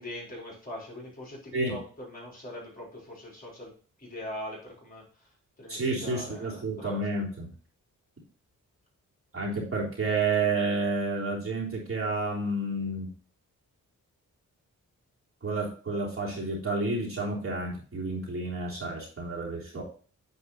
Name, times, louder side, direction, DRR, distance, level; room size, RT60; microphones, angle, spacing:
voice 1, 0.0-1.4 1.7-1.8 2.1-3.7 4.0-5.0 5.6-7.0, left 1 dB, 25° left, -3 dB, 4.2 m, -41 dB
voice 2, 5.7-7.5 9.3-13.1 15.4-19.8, right 3 dB, 40° right, -4 dB, 3.6 m, -30 dB
9.5 x 4.7 x 4.2 m, 0.40 s
wide cardioid pair, 105°, 32 cm